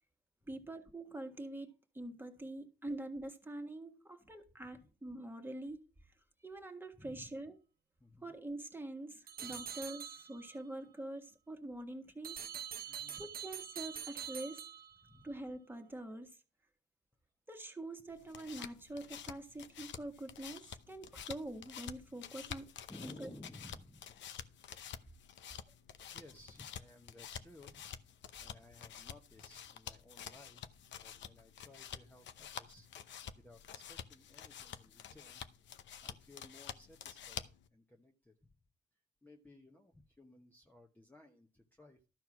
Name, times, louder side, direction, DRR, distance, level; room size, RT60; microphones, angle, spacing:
voice 1, 0.5-1.7 1.9-5.8 6.4-7.6 8.2-12.5 12.9-14.7 15.2-16.4 17.5-22.7 23.0-23.3, right 1 dB, 10° right, 1.6 m, -45 dB
voice 2, 7.0-7.3 8.0-8.3 9.4-9.6 12.9-13.2 15.0-15.3 22.9-24.1 26.1-27.9 28.4-32.9 33.3-35.5 36.0-38.3 39.2-42.0, left 1 dB, 10° left, 1.0 m, -57 dB
sound 1, 9.3-10.6 12.2-15.3, right 8 dB, 50° right, 0.9 m, -45 dB
sound 2, 18.1-37.7, left 9 dB, 65° left, 0.8 m, -49 dB
12.5 x 4.5 x 6.0 m
cardioid pair, 90°, 20 cm